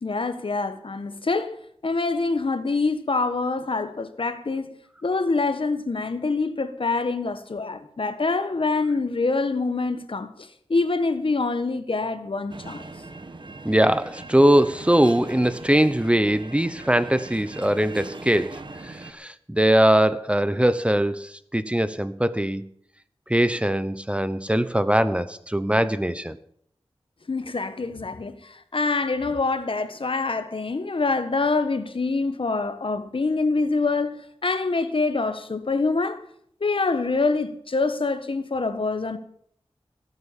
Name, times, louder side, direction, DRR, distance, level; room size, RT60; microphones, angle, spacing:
voice 1, 0.0-1.6 1.8-4.7 5.0-12.8 27.3-36.2 36.6-39.2, left 3 dB, 60° left, 1.4 m, -25 dB
sound 1, 12.5-19.1, right 2 dB, 50° right, 1.5 m, -40 dB
voice 2, 13.6-22.6 23.3-26.4, right 1 dB, 10° right, 0.8 m, -21 dB
18.5 x 8.1 x 7.3 m
wide cardioid pair, 60°, 10 cm